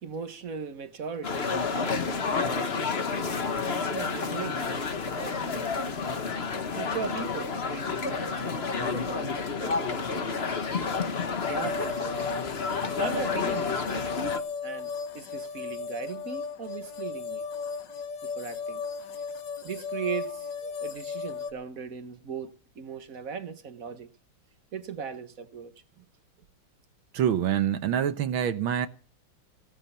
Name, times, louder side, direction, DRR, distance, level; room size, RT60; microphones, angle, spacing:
voice 1, 0.0-5.8 6.7-10.6 11.5-12.3 13.0-14.1 14.6-17.5 18.2-18.8 19.6-24.1 24.7-25.7, right 6 dB, 45° right, 1.6 m, -39 dB
sound 1, 1.2-14.4, left 5 dB, 35° left, 1.3 m, -30 dB
sound 2, 11.4-21.5, left 5 dB, 65° left, 2.0 m, -35 dB
voice 2, 27.1-28.9, right 9 dB, 80° right, 1.8 m, -26 dB
17.0 x 12.0 x 5.7 m
omnidirectional pair, 2.2 m